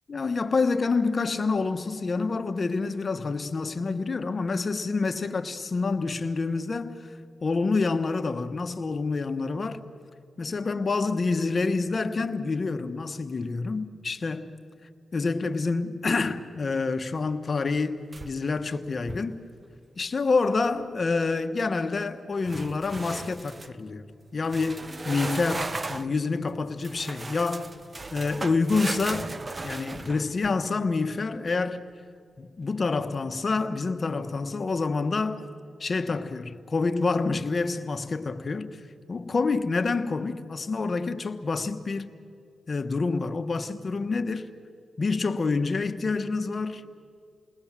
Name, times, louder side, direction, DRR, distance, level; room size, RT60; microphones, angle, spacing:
voice 1, 0.1-7.1 7.4-9.8 10.4-14.5 15.1-19.4 20.0-24.0 24.3-27.7 28.1-29.3 29.6-31.8 32.4-35.5 35.8-38.7 39.1-42.1 42.7-44.5 45.0-47.0, left 4 dB, 50° left, 1.4 m, -27 dB
sound 1, 18.1-18.6 19.0-19.4 22.4-23.7 24.5-26.1 26.8-30.7, right 3 dB, 35° right, 0.9 m, -36 dB
29.5 x 20.5 x 7.5 m
supercardioid pair, 45°, 0 cm